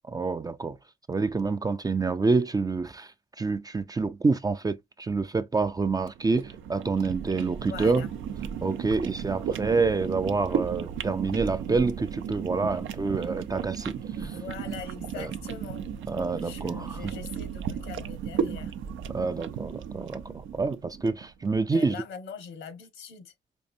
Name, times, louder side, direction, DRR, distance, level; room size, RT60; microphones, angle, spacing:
voice 1, 0.1-0.8 1.1-3.1 3.4-8.0 8.6-14.0 14.2-14.3 15.2-15.3 16.1-17.1 19.1-22.0, right 4 dB, 20° right, 0.4 m, -27 dB
sound 1, 6.0-21.3, right 7 dB, 75° right, 0.5 m, -35 dB
voice 2, 7.6-8.1 14.1-15.8 16.3-18.7 21.7-23.3, left 6 dB, 80° left, 1.3 m, -42 dB
5.3 x 2.5 x 2.6 m
cardioid pair, 90°, 20 cm